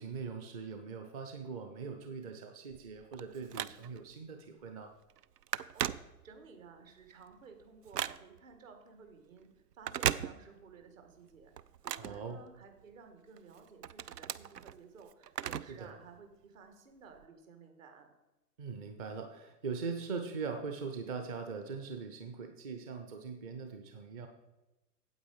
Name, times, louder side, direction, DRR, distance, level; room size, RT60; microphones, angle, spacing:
voice 1, 0.0-4.9 12.0-12.4 15.7-15.9 18.6-24.3, right 5 dB, 25° right, 5 dB, 0.6 m, -41 dB
Telephone, 2.7-4.1 4.6-4.8 5.1-6.6 7.0-8.5 9.7-10.8 11.1-12.9 13.4-15.9 16.2-16.3 17.1-17.2, right 9 dB, 80° right, 0.5 m, -38 dB
voice 2, 5.7-9.5 9.7-11.5 11.8-18.1, right 5 dB, 55° right, 5 dB, 1.9 m, -55 dB
8.8 x 8.1 x 4.9 m, 1.0 s
figure-of-eight pair, 110°, 48 cm